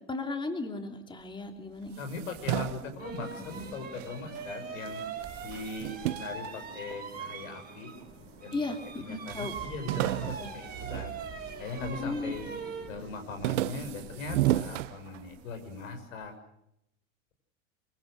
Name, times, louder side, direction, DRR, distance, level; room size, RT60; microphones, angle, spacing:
voice 1, 0.1-2.0 8.5-9.5 10.4-10.5 11.8-12.3, left 3 dB, 10° left, 5 dB, 2.9 m, -35 dB
sound 1, 1.9-4.5 4.8-7.4 8.0-8.6 8.9-9.0 9.3-11.9 12.3-12.7 13.0-15.6, right 15 dB, 65° right, 1.2 m, -34 dB
voice 2, 2.0-5.0 5.4-7.9 8.4-8.6 9.0-11.1 11.6-12.5 12.9-16.3, left 3 dB, 75° left, 6 dB, 6.4 m, -40 dB
sound 2, 2.4-2.5 3.0-8.1 8.4-14.6, right 5 dB, 25° right, 6.1 m, -42 dB
sound 3, 3.3-14.3, left 2 dB, 30° left, 7.1 m, -52 dB
25.0 x 23.0 x 6.6 m, 0.79 s
hypercardioid pair, 100°, 40 cm